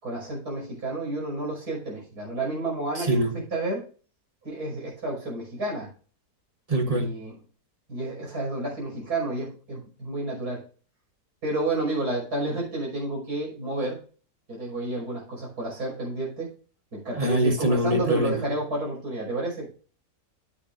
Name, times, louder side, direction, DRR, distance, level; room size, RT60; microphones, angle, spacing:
voice 1, 0.0-3.8 4.4-5.9 6.8-7.4 7.9-10.6 11.4-14.0 14.5-16.5 16.9-19.7, right 2 dB, 65° right, 6.5 m, -30 dB
voice 2, 2.9-3.4 6.7-7.1 17.1-18.4, right 1 dB, 25° right, 1.2 m, -24 dB
10.5 x 9.6 x 2.6 m
omnidirectional pair, 1.8 m